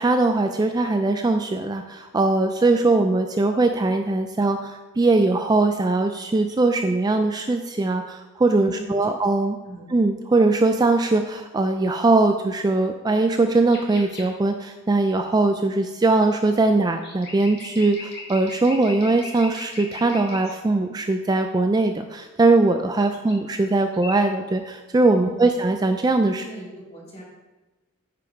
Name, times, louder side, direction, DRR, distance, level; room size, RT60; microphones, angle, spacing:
voice 1, 0.0-9.6 9.9-26.5, right 2 dB, 20° right, 6 dB, 0.3 m, -21 dB
voice 2, 8.6-8.9 9.6-9.9 25.2-25.5 26.4-27.2, equal, 30° left, -4 dB, 2.5 m, -39 dB
sound 1, 13.7-14.3 16.9-20.6 23.1-23.6 23.9-24.2, left 3 dB, 50° left, 1.6 m, -39 dB
9.8 x 5.0 x 4.6 m, 1.2 s
head